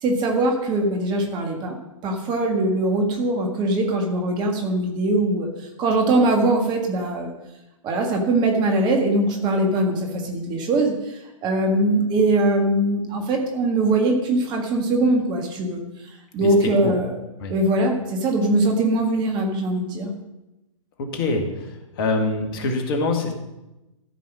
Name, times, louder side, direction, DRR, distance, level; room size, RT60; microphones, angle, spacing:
voice 1, 0.0-1.8 2.0-5.5 5.8-7.3 7.8-15.8 16.3-17.2 17.5-20.1, right 2 dB, 25° right, 2 dB, 1.8 m, -21 dB
voice 2, 16.4-16.9 17.4-17.5 21.0-21.7 21.9-23.3, left 3 dB, 45° left, 3 dB, 2.0 m, -24 dB
13.5 x 5.5 x 6.3 m, 0.96 s
figure-of-eight pair, 115°, 17 cm